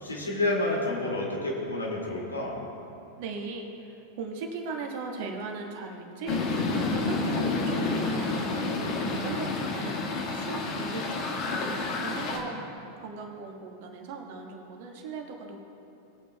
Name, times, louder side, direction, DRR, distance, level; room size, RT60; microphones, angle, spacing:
voice 1, 0.0-2.6 9.0-9.6, left 2 dB, 75° left, -3 dB, 2.3 m, -30 dB
voice 2, 3.2-8.5 9.1-10.0 10.3-11.4 12.0-12.6 13.0-15.6, right 4 dB, 50° right, 1 dB, 1.6 m, -38 dB
sound 1, 6.3-12.4, left 3 dB, 40° left, 1.6 m, -29 dB
20.0 x 9.0 x 2.3 m, 2.8 s
figure-of-eight pair, 90°, 0 cm